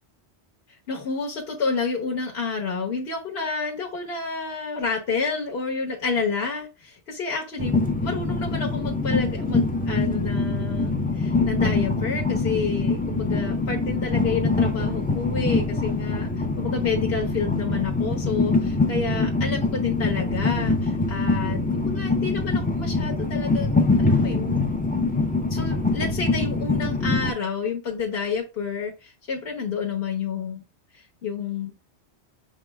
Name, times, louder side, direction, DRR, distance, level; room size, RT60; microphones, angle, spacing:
voice 1, 0.9-16.3 16.6-24.6 25.5-30.6 30.9-31.8, left 5 dB, 60° left, 0 dB, 1.2 m, -29 dB
Train, 7.6-27.3, left 3 dB, 10° left, 0.4 m, -24 dB
5.1 x 2.1 x 4.5 m, 0.29 s
omnidirectional pair, 1.2 m